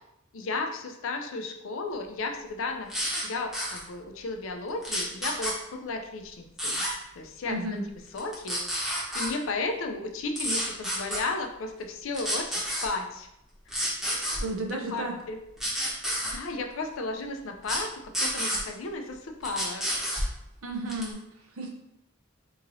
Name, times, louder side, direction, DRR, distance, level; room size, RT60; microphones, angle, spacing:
voice 1, 0.3-2.9 3.2-6.8 7.2-7.8 8.1-8.9 9.1-13.3 14.9-15.4 16.3-17.9 18.2-19.9, left 3 dB, 70° left, 4 dB, 0.5 m, -34 dB
sound 1, 2.9-3.2 3.5-3.8 4.8-5.5 6.6-6.9 8.2-9.3 10.4-11.2 12.1-12.9 13.7-14.4 15.6-16.3 17.6-17.8 18.1-18.6 19.4-20.3 20.9-21.1, equal, ahead, 0.9 m, -29 dB
voice 2, 7.5-7.8 14.4-15.2 20.6-21.7, right 1 dB, 85° right, 2 dB, 0.7 m, -33 dB
2.9 x 2.6 x 3.9 m, 0.81 s
head